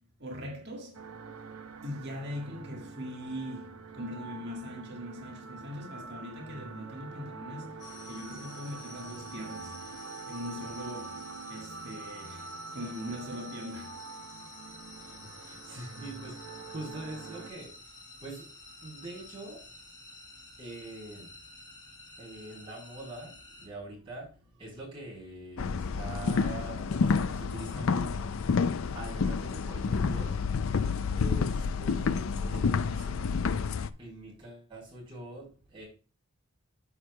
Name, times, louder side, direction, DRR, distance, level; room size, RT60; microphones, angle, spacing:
voice 1, 0.2-1.1 1.8-9.8 10.3-14.1, equal, 50° right, 1.7 m, -41 dB
sound 1, 0.9-17.5, right 5 dB, 85° right, 0.8 m, -46 dB
sound 2, 7.8-23.7, left 2 dB, 20° left, 2.9 m, -49 dB
voice 2, 15.0-30.6 31.1-35.9, right 2 dB, 25° right, 4.1 m, -45 dB
sound 3, 25.6-33.9, left 5 dB, 70° left, 0.4 m, -29 dB
13.0 x 4.8 x 2.2 m
head